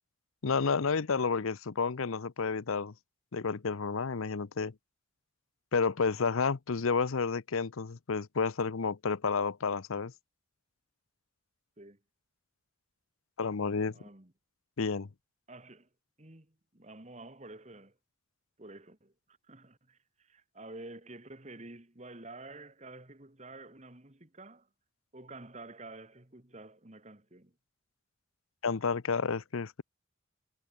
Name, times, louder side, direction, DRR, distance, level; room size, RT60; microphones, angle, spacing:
voice 1, 0.4-2.9 3.3-4.7 5.7-10.1 13.4-13.9 14.8-15.1 28.6-29.8, left 5 dB, 80° left, 0.7 m, -30 dB
voice 2, 13.9-14.3 15.5-15.9 16.2-18.0 18.6-24.7 25.1-27.5, right 2 dB, 30° right, 1.8 m, -49 dB
head